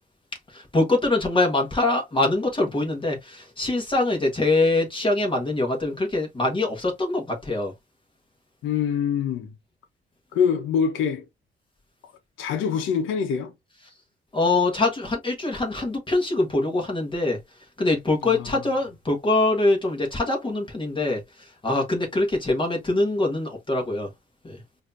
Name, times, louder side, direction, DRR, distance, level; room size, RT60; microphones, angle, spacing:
voice 1, 0.5-7.7 14.3-17.4 17.8-24.1 24.4-24.6, left 2 dB, 25° left, 1.6 m, -24 dB
voice 2, 8.6-9.5 10.3-11.2 12.4-13.5 18.2-18.5, left 7 dB, 85° left, 1.0 m, -24 dB
4.8 x 2.9 x 2.6 m
cardioid pair, 90°, 20 cm